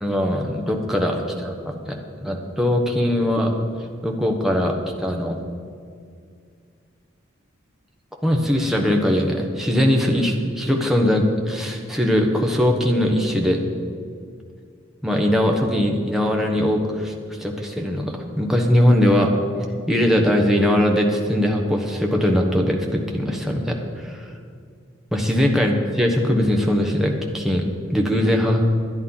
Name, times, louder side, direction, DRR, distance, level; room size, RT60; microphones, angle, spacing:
voice 1, 0.0-3.5 4.0-5.4 8.2-13.6 15.0-17.1 17.4-19.3 19.9-23.8 24.0-24.3 25.1-28.6, equal, ahead, 1 dB, 1.2 m, -20 dB
11.0 x 10.0 x 5.7 m, 2.2 s
head